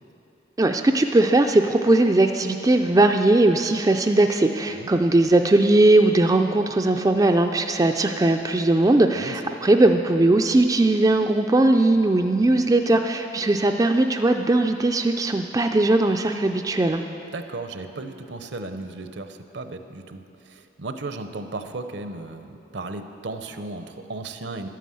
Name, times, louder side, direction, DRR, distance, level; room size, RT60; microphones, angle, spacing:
voice 1, 0.6-17.0, right 2 dB, 20° right, 5 dB, 0.3 m, -19 dB
voice 2, 17.3-24.7, right 2 dB, 70° right, 8 dB, 0.7 m, -35 dB
11.5 x 9.3 x 7.6 m, 2.9 s
head